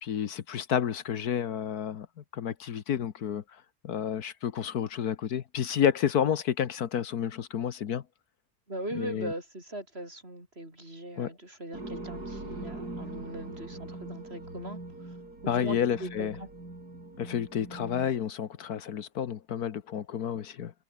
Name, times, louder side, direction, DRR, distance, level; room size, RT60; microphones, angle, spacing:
voice 1, 0.0-2.1 2.3-3.4 3.8-8.0 8.9-9.3 11.2-11.3 15.5-16.4 17.2-20.7, left 9 dB, 75° left, 1.6 m, -30 dB
voice 2, 8.7-14.8 15.4-16.5, right 1 dB, 40° right, 8.3 m, -40 dB
sound 1, 11.7-18.3, right 2 dB, 80° right, 7.5 m, -42 dB
omnidirectional pair, 1.7 m